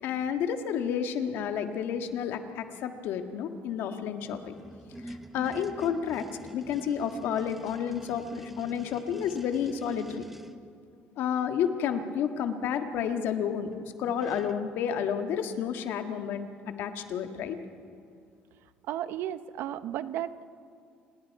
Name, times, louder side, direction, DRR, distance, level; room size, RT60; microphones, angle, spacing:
voice 1, 0.0-4.6 5.0-6.2 6.5-10.3 11.2-17.6, left 8 dB, 70° left, 7 dB, 1.6 m, -31 dB
sound 1, 4.1-10.6 13.7-13.8 14.1-14.7, right 1 dB, 5° right, 1.0 m, -46 dB
voice 2, 18.9-20.5, right 11 dB, 75° right, 13 dB, 0.8 m, -34 dB
29.5 x 19.5 x 4.7 m, 2.4 s
cardioid pair, 110°, 4 cm